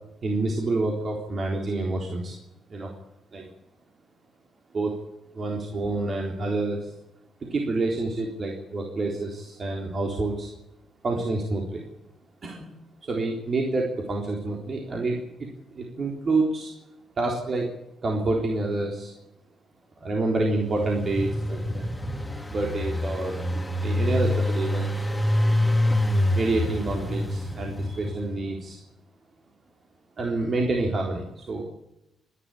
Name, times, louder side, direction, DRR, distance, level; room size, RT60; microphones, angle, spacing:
voice 1, 0.2-2.4 2.7-2.9 3.3-3.5 4.7-4.9 5.3-6.9 7.4-10.5 11.0-11.8 12.4-12.7 13.0-16.7 17.2-17.7 18.0-19.1 20.0-21.8 22.5-25.0 25.3-25.8 26.4-28.8 30.2-31.6, right 2 dB, 40° right, 0 dB, 3.7 m, -28 dB
Engine, 20.4-28.4, left 1 dB, 10° left, 2.6 m, -26 dB
25.5 x 11.0 x 10.0 m, 0.91 s
cardioid pair, 90°, 0 cm